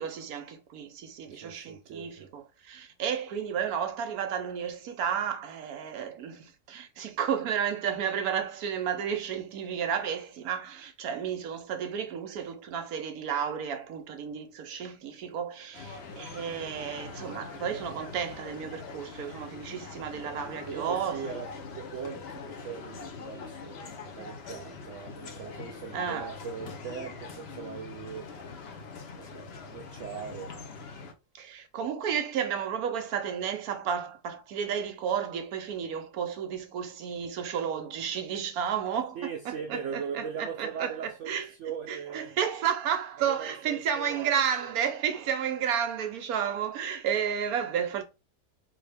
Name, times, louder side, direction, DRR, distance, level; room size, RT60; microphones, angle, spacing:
voice 1, 0.0-21.3 25.9-26.3 31.3-41.5 41.9-48.0, right 8 dB, 65° right, 1.0 m, -32 dB
voice 2, 1.3-2.3 20.7-30.5 39.1-42.4 43.2-44.7, right 7 dB, 85° right, 0.6 m, -40 dB
sound 1, 15.7-31.1, left 4 dB, 60° left, 0.6 m, -43 dB
4.3 x 2.8 x 3.3 m
omnidirectional pair, 1.9 m